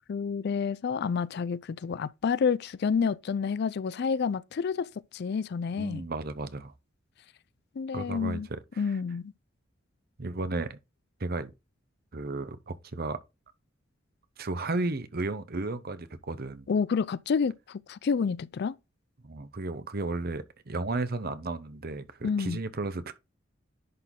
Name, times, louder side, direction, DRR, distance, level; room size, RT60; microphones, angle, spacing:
voice 1, 0.1-4.9 5.1-6.1 7.8-8.5 8.8-9.3 16.7-18.8 22.2-22.6, left 6 dB, 55° left, 0.4 m, -29 dB
voice 2, 5.8-6.7 7.9-9.0 10.2-10.8 11.2-11.5 12.1-13.2 14.4-16.7 19.2-23.1, right 2 dB, 50° right, 0.9 m, -34 dB
10.5 x 4.1 x 3.7 m
head